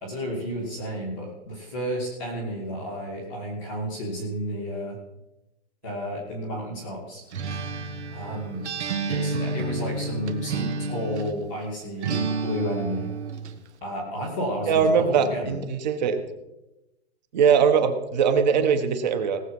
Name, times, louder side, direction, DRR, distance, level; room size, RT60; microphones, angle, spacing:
voice 1, 0.0-5.0 5.8-7.2 8.1-8.6 9.1-13.1 13.8-15.5, equal, ahead, -15 dB, 0.3 m, -32 dB
Acoustic guitar, 7.3-11.4 12.0-13.6, right 4 dB, 80° right, 1.5 m, -30 dB
voice 2, 14.7-16.2 17.3-19.4, right 6 dB, 40° right, 8 dB, 1.5 m, -21 dB
18.5 x 7.5 x 5.5 m, 0.94 s
hypercardioid pair, 170°, 34 cm